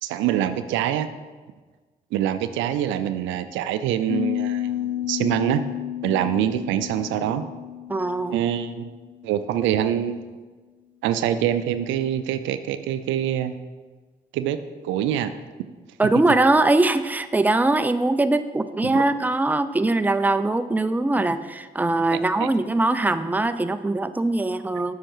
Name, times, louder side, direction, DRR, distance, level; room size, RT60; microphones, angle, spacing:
voice 1, 0.0-1.1 2.1-5.6 6.0-7.4 8.3-8.9 9.2-10.3 11.0-13.5 14.3-14.6 14.8-15.3 18.8-19.1 22.4-22.5, right 11 dB, 85° right, 11 dB, 0.4 m, -25 dB
Piano, 4.1-9.7, left 12 dB, 65° left, 0.6 m, -31 dB
voice 2, 7.9-8.4 16.0-24.9, right 2 dB, 10° right, 11 dB, 0.5 m, -21 dB
7.6 x 5.6 x 4.5 m, 1.3 s
supercardioid pair, 45°, 19 cm